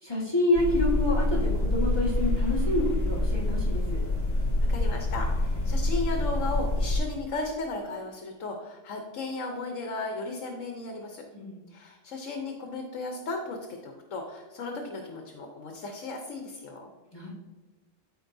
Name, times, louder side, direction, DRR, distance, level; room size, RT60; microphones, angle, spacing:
voice 1, 0.0-4.0 11.3-11.6 17.1-17.3, left 1 dB, 20° left, -6 dB, 1.7 m, -28 dB
sound 1, 0.5-7.0, left 2 dB, 50° left, 1.7 m, -26 dB
voice 2, 4.3-11.2 11.7-16.9, left 3 dB, 75° left, 3 dB, 1.2 m, -35 dB
13.5 x 4.6 x 2.7 m, 1.3 s
omnidirectional pair, 1.3 m